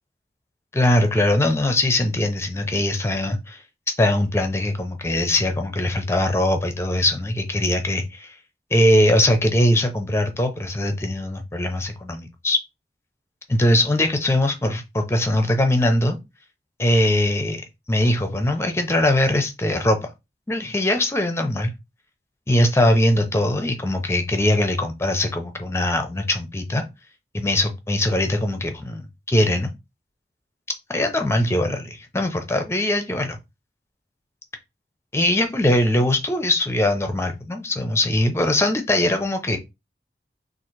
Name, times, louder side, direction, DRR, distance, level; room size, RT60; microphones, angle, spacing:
voice 1, 0.7-3.6 4.0-8.3 8.7-12.6 13.5-16.2 16.8-17.6 17.9-20.0 20.5-21.7 22.5-26.8 27.3-29.7 30.9-33.4 35.1-39.6, left 1 dB, 15° left, 0.6 m, -21 dB
3.7 x 2.5 x 4.5 m
head